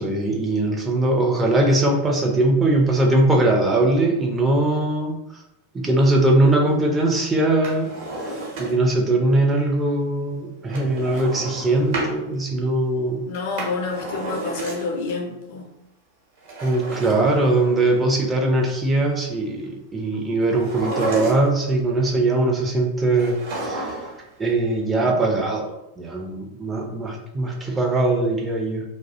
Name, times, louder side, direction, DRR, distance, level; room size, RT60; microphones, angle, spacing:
voice 1, 0.0-5.2 5.7-13.2 16.6-24.0 24.4-28.9, right 2 dB, 15° right, 0 dB, 0.4 m, -21 dB
Drawer open or close, 7.5-9.0 10.7-12.2 13.3-15.1 16.4-18.0 20.5-21.7 23.1-24.3 24.5-24.6, right 2 dB, 50° right, 0.8 m, -31 dB
voice 2, 13.3-15.7, left 3 dB, 50° left, 3 dB, 0.4 m, -28 dB
2.2 x 2.0 x 2.7 m, 0.90 s
figure-of-eight pair, 90°, 0 cm